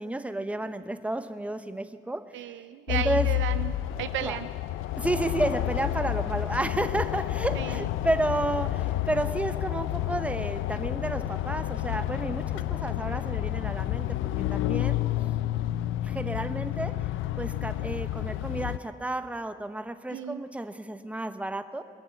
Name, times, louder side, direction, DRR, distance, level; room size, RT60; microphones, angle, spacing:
voice 1, 0.0-2.3 2.9-3.3 4.2-4.4 5.0-14.1 14.5-15.0 16.0-16.9 17.4-21.8, right 2 dB, 5° right, 9 dB, 0.8 m, -31 dB
voice 2, 2.3-4.5 7.6-7.7 20.1-20.4, right 12 dB, 75° right, 11 dB, 0.5 m, -34 dB
sound 1, 2.9-18.8, left 14 dB, 90° left, 0.4 m, -30 dB
21.5 x 7.3 x 8.2 m, 2.1 s
cardioid pair, 90°, 20 cm